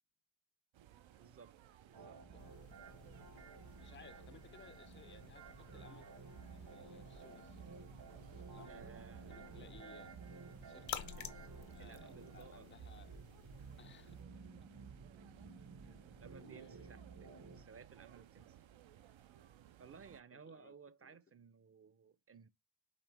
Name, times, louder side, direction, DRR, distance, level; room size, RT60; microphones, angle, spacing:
sound 1, 0.7-20.2, right 11 dB, 75° right, 0.6 m, -61 dB
voice 1, 1.1-1.6 1.8-2.2 4.0-4.3 8.7-9.6 11.2-11.3 11.8-12.9 15.8-18.6 19.8-22.5, right 6 dB, 30° right, 0.5 m, -58 dB
sound 2, 1.9-17.6, right 4 dB, 55° right, 1.1 m, -54 dB
sound 3, 2.4-14.2, left 9 dB, 70° left, 0.7 m, -54 dB
voice 2, 3.8-6.1 6.5-7.8 8.3-8.8 9.3-10.2 10.7-11.1 11.7-13.2 13.8-14.2 16.5-16.8 20.3-20.7 21.0-21.2, left 7 dB, 25° left, 0.4 m, -61 dB
5.1 x 2.9 x 3.4 m
cardioid pair, 55°, 47 cm